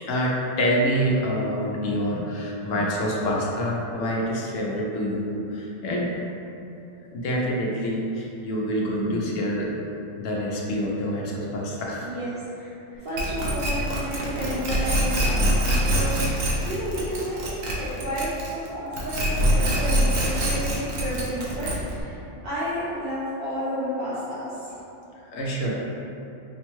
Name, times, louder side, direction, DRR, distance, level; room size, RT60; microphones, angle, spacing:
voice 1, 0.1-6.2 7.1-9.7 10.2-12.1 25.3-25.7, equal, 85° left, -2 dB, 1.0 m, -26 dB
voice 2, 12.0-12.7 13.0-17.5 17.8-24.8, equal, 55° right, -11 dB, 0.8 m, -31 dB
sound 1, 13.2-18.7 18.9-22.0, equal, 80° right, 1.1 m, -24 dB
5.1 x 2.2 x 3.0 m, 2.8 s
omnidirectional pair, 1.3 m